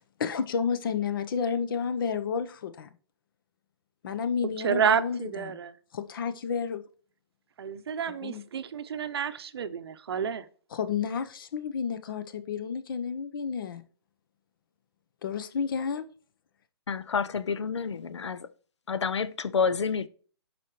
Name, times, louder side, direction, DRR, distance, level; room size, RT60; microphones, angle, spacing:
voice 1, 0.0-2.9 4.0-5.6 5.9-6.8 8.1-8.4 10.7-13.8 15.2-16.1, left 6 dB, 50° left, 0.8 m, -31 dB
voice 2, 4.6-5.7 7.6-10.5, right 8 dB, 65° right, 0.7 m, -29 dB
voice 3, 16.9-18.5 18.9-20.1, left 5 dB, 90° left, 0.6 m, -29 dB
11.0 x 4.3 x 3.1 m
hypercardioid pair, 150°, 14 cm